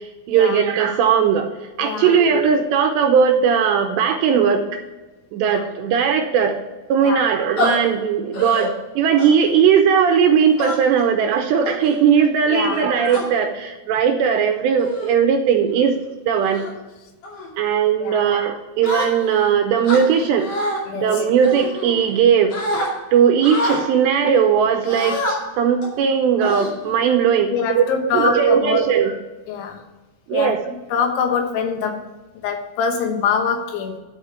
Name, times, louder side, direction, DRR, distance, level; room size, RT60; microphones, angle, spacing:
voice 1, 0.3-1.5 1.8-4.6 5.3-6.6 6.9-16.0 16.3-16.6 17.6-20.5 20.9-22.5 23.1-25.2 25.6-27.8 28.1-29.2 30.3-30.6, right 7 dB, 80° right, 5 dB, 2.7 m, -18 dB
voice 2, 1.8-2.2 5.4-5.7 7.0-7.3 12.5-12.9 18.0-18.2 20.9-21.2 27.5-28.8 29.5-29.8 30.3-32.0 32.4-34.0, left 6 dB, 80° left, 4 dB, 3.6 m, -24 dB
sound 1, 7.6-7.8 8.3-8.7 9.2-9.5 10.6-11.0 11.6-11.9 12.7-13.2 14.1-14.3 14.8-15.2 15.6-15.9 16.4-16.7 17.2-17.5 18.8-19.5 19.8-20.8 21.4-22.2 22.5-22.9 23.4-23.8 24.8-25.4 25.8-26.0 26.4-27.1, left 1 dB, 45° left, 3.2 m, -26 dB
12.5 x 5.0 x 5.8 m, 1.2 s
omnidirectional pair, 5.5 m